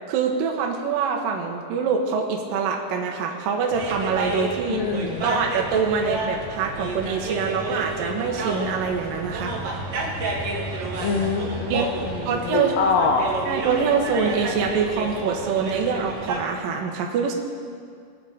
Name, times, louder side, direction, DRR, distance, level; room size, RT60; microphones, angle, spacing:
voice 1, 0.1-4.8 5.2-9.5 10.8-10.9 11.7-11.9 12.3-12.7 13.5-17.3, right 6 dB, 70° right, 1 dB, 2.6 m, -25 dB
sound 1, 3.7-16.4, right 2 dB, 55° right, 1.4 m, -30 dB
voice 2, 4.7-5.3 11.0-13.3, left 5 dB, 75° left, 1 dB, 2.2 m, -24 dB
20.5 x 8.7 x 5.0 m, 2.2 s
omnidirectional pair, 4.6 m